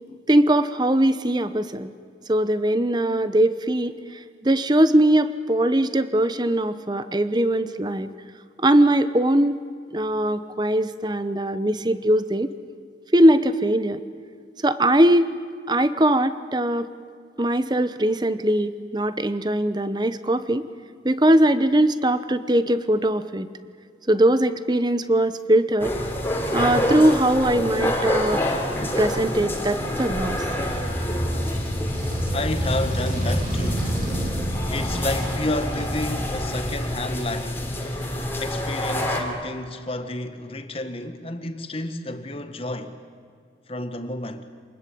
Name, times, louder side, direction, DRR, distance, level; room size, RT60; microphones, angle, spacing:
voice 1, 0.3-1.9 2.3-3.9 4.4-8.1 8.6-9.6 9.9-12.5 13.1-14.0 14.6-15.3 15.7-16.9 17.4-20.6 21.0-23.5 24.1-25.9 26.5-28.4 29.0-30.4, right 1 dB, 25° right, 0.9 m, -20 dB
sound 1, 25.8-39.2, left 1 dB, 10° left, 3.3 m, -27 dB
Motorcycle, 30.2-36.9, equal, 50° right, 6.0 m, -29 dB
voice 2, 32.3-34.1 34.7-37.6 38.4-43.0 43.7-44.4, left 2 dB, 30° left, 1.6 m, -31 dB
27.0 x 20.5 x 8.6 m
head